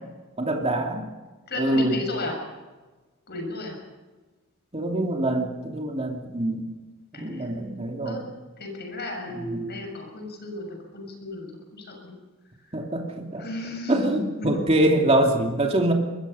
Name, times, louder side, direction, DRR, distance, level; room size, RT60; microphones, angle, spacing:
voice 1, 0.4-1.1 1.6-2.0 4.7-6.6 7.1-8.3 9.3-9.6 12.7-13.4 13.9-15.9, right 1 dB, 30° right, 2 dB, 2.8 m, -24 dB
voice 2, 1.5-2.4 3.3-3.8 7.1-7.6 8.0-8.2 8.6-12.2 13.4-14.6, left 2 dB, 50° left, 2 dB, 6.9 m, -34 dB
24.5 x 21.5 x 5.7 m, 1.3 s
head